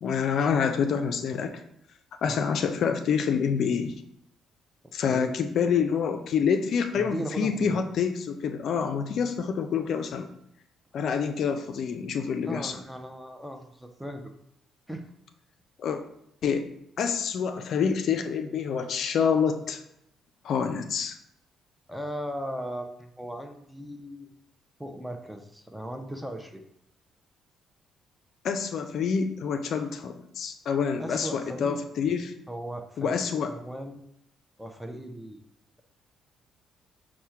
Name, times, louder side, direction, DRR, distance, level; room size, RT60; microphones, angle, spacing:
voice 1, 0.0-1.5 2.2-3.9 4.9-10.3 10.9-12.7 15.8-16.0 16.4-16.7 17.0-19.8 20.4-21.1 28.4-32.3 33.0-33.5, left 6 dB, 65° left, 7 dB, 0.3 m, -27 dB
voice 2, 7.0-7.8 12.5-14.3 14.9-15.1 21.9-24.3 24.8-26.6 31.0-31.8 32.5-34.0 34.6-35.4, right 1 dB, 5° right, 5 dB, 0.5 m, -37 dB
4.2 x 2.1 x 4.6 m, 0.75 s
cardioid pair, 95°, 0 cm